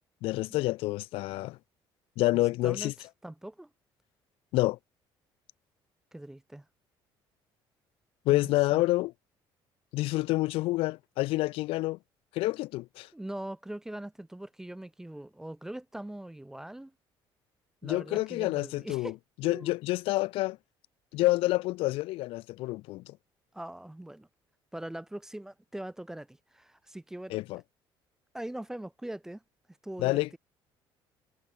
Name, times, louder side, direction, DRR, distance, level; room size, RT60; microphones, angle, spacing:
voice 1, 0.2-1.6 2.2-2.9 4.5-4.8 8.3-9.1 9.9-12.0 12.3-13.1 17.8-19.1 19.4-20.6 21.1-23.2 27.3-27.6 30.0-30.4, left 19 dB, 80° left, 0.4 m, -28 dB
voice 2, 2.3-2.9 3.2-3.7 6.1-6.7 8.3-8.8 13.1-16.9 17.8-19.2 19.4-19.7 23.5-24.3 24.7-27.4 28.3-29.4 29.8-30.4, right 1 dB, 5° right, 0.4 m, -41 dB
cardioid pair, 145°, 9 cm